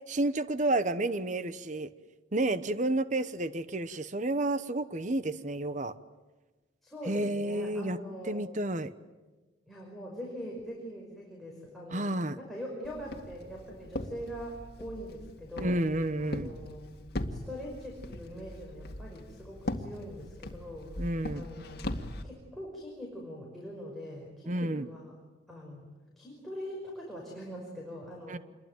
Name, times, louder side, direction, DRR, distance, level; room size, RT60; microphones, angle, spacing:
voice 1, 0.1-1.9 2.3-5.9 7.1-8.0 8.2-8.9 11.9-12.4 15.6-16.5 21.0-21.4 24.5-24.9 28.3-28.4, right 1 dB, 40° right, 13 dB, 0.9 m, -30 dB
voice 2, 6.8-8.5 9.7-15.8 16.2-16.9 17.3-21.1 21.3-25.2 25.5-25.9 26.2-28.4, equal, ahead, -3 dB, 5.5 m, -43 dB
Walk footsteps, 12.8-22.2, left 1 dB, 55° left, 2.2 m, -40 dB
28.0 x 22.5 x 9.1 m, 1.2 s
head